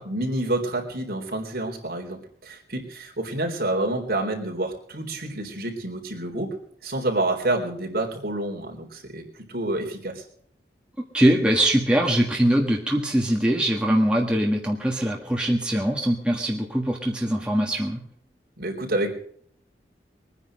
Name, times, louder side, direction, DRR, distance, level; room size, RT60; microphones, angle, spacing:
voice 1, 0.0-6.6 6.8-10.2 18.6-19.1, right 2 dB, 60° right, 0 dB, 3.9 m, -28 dB
voice 2, 11.1-18.0, right 1 dB, 5° right, 0 dB, 1.5 m, -22 dB
22.0 x 9.9 x 6.3 m, 0.64 s
head